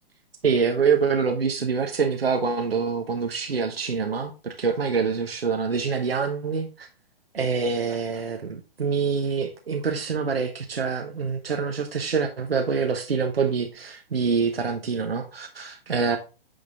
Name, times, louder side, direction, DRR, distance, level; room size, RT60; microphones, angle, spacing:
voice 1, 0.4-6.9 7.3-16.2, right 5 dB, 75° right, 1.0 m, -25 dB
8.7 x 3.8 x 3.6 m
figure-of-eight pair, 125°, 30 cm